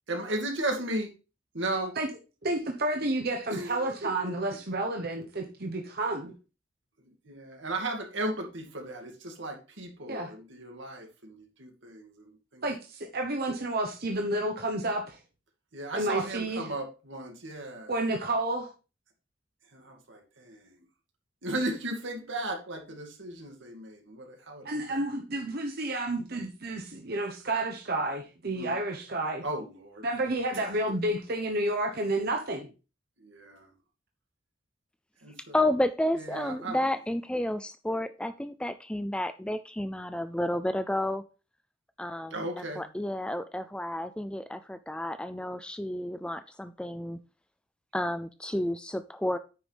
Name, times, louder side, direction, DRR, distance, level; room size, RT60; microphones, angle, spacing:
voice 1, 0.1-1.1 1.5-1.9 3.5-4.1 7.2-12.6 15.7-17.9 19.7-20.8 21.4-25.0 28.6-28.7 29.4-30.0 30.5-30.7 33.2-33.7 35.2-35.6 36.2-36.8 42.3-42.8, right 1 dB, 70° right, 2.4 m, -36 dB
voice 2, 2.4-6.3 10.1-10.3 12.6-15.2 15.9-16.7 17.9-18.7 24.6-29.4 30.0-32.7, right 1 dB, 50° right, 1.1 m, -30 dB
voice 3, 35.5-41.2 42.0-47.2 47.9-49.4, left 1 dB, 5° left, 0.4 m, -31 dB
9.3 x 6.2 x 3.5 m
head